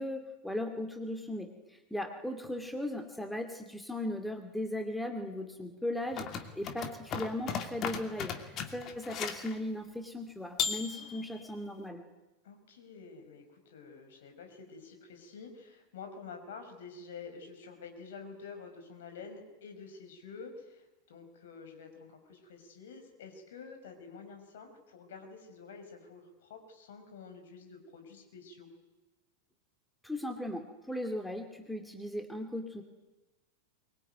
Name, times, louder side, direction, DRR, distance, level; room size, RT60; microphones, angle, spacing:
voice 1, 0.0-12.0 30.0-32.8, left 1 dB, 5° left, 5 dB, 2.4 m, -37 dB
sound 1, 6.1-9.5 10.6-11.4, left 7 dB, 35° left, 2.6 m, -36 dB
voice 2, 12.4-28.7, left 5 dB, 60° left, 5 dB, 5.3 m, -49 dB
24.0 x 21.5 x 9.3 m, 1.1 s
figure-of-eight pair, 90°, 0 cm